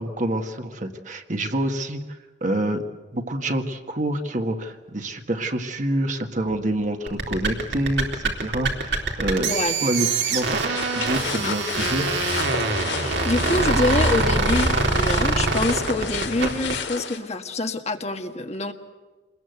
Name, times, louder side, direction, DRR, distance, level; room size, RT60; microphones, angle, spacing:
voice 1, 0.0-2.0 2.4-2.8 3.1-12.1, right 1 dB, 45° right, 5 dB, 1.9 m, -27 dB
sound 1, 6.5-6.6 7.0-7.1 7.6-7.7 8.6-14.7, equal, 10° right, 2.2 m, -33 dB
sound 2, 7.1-16.8, right 3 dB, 80° right, 4.0 m, -24 dB
sound 3, 10.7-17.2, left 5 dB, 90° left, 3.0 m, -32 dB
voice 2, 12.8-18.7, left 2 dB, 40° left, 5 dB, 1.7 m, -26 dB
27.5 x 21.5 x 8.1 m, 1.3 s
head